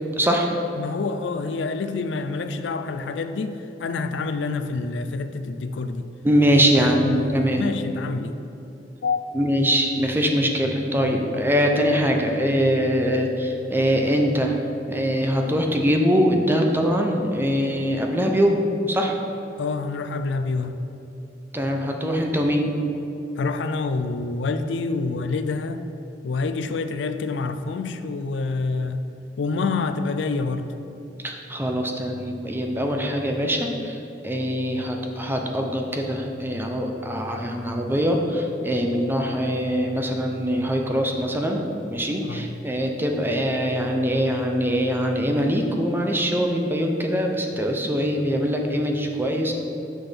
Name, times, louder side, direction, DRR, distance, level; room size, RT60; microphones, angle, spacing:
voice 1, 0.2-0.5 6.2-7.6 9.3-14.5 14.9-19.1 21.5-22.8 31.2-34.0 34.2-41.6 41.9-49.5, equal, 10° right, 2 dB, 0.6 m, -23 dB
voice 2, 0.8-6.1 6.5-8.4 9.0-9.2 11.0-11.1 19.6-20.8 23.4-25.8 26.2-29.0 29.4-30.7 42.2-42.5, left 3 dB, 85° left, 9 dB, 0.4 m, -27 dB
6.3 x 6.0 x 5.1 m, 2.9 s
head